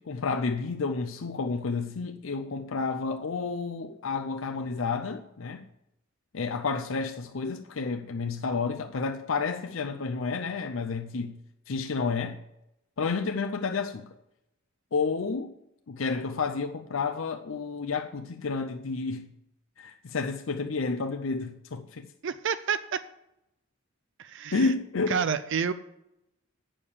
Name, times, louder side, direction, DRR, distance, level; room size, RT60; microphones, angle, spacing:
voice 1, 0.0-5.6 6.3-11.4 11.7-12.4 13.0-14.1 14.9-15.5 15.9-19.3 19.8-22.0 24.5-25.2, left 4 dB, 75° left, 0.6 m, -30 dB
voice 2, 22.2-23.0 24.2-24.7 25.1-25.7, right 6 dB, 65° right, 0.5 m, -29 dB
8.8 x 6.8 x 7.1 m
head